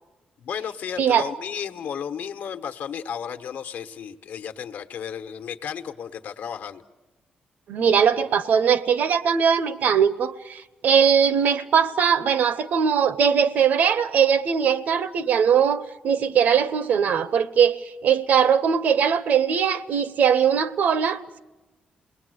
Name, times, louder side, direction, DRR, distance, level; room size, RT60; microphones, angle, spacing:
voice 1, 0.4-6.8, left 8 dB, 75° left, 7 dB, 1.1 m, -33 dB
voice 2, 7.7-17.8 18.0-21.4, right 7 dB, 65° right, 14 dB, 0.9 m, -20 dB
28.5 x 20.0 x 8.0 m, 1.1 s
wide cardioid pair, 155°, 3 cm